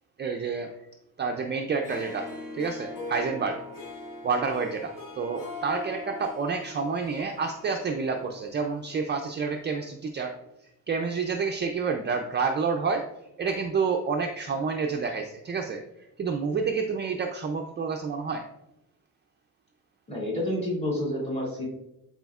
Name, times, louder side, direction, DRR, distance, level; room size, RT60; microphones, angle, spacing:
voice 1, 0.2-0.7 1.2-2.3 2.5-3.6 4.2-10.3 10.9-13.1 13.4-15.8 16.2-18.4, right 5 dB, 30° right, 3 dB, 0.4 m, -29 dB
Harp, 1.7-9.1, left 2 dB, 60° left, 1.4 m, -41 dB
voice 2, 20.1-21.7, left 1 dB, 15° left, -4 dB, 2.2 m, -29 dB
12.0 x 4.2 x 2.3 m, 0.89 s
wide cardioid pair, 175°, 35 cm